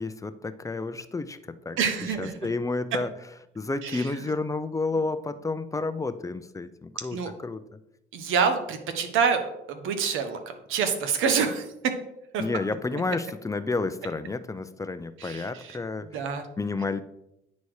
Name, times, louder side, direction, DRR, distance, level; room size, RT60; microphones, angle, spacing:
voice 1, 0.0-1.8 2.2-3.1 3.5-7.2 7.4-7.6 12.4-16.3 16.6-17.0, left 3 dB, 15° left, 11 dB, 0.6 m, -30 dB
voice 2, 1.8-2.3 3.8-4.1 7.1-7.3 8.1-11.7 12.3-12.4 15.2-15.8 16.1-16.4, right 6 dB, 85° right, 7 dB, 1.1 m, -27 dB
9.4 x 4.2 x 4.8 m, 0.83 s
cardioid pair, 90°, 20 cm